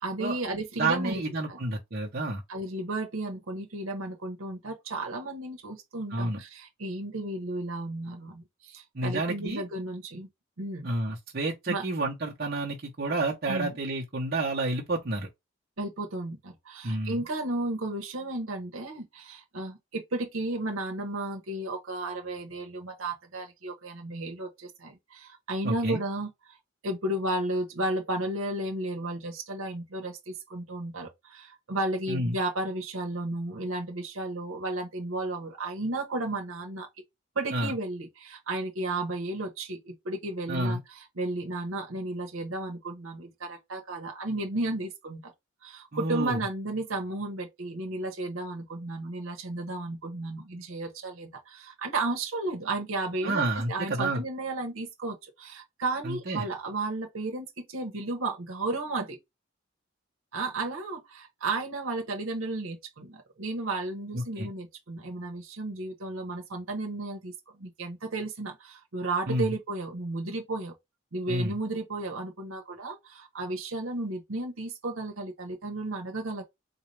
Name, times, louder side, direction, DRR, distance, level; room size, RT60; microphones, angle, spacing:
voice 1, 0.0-1.2 1.5-1.6 2.5-10.3 10.6-10.9 11.7-11.8 13.5-13.7 15.8-26.6 26.8-36.9 37.3-45.3 45.6-59.2 60.3-70.7 71.1-76.4, right 2 dB, 85° right, 1.0 m, -33 dB
voice 2, 0.8-2.4 6.1-6.4 8.9-9.6 10.8-15.3 16.8-17.2 25.6-26.0 32.1-32.4 37.5-37.7 40.5-40.8 45.9-46.4 53.2-54.2 56.0-56.4 64.1-64.5 69.3-69.5 71.3-71.6, right 2 dB, 50° right, 0.9 m, -30 dB
4.0 x 2.3 x 3.2 m
head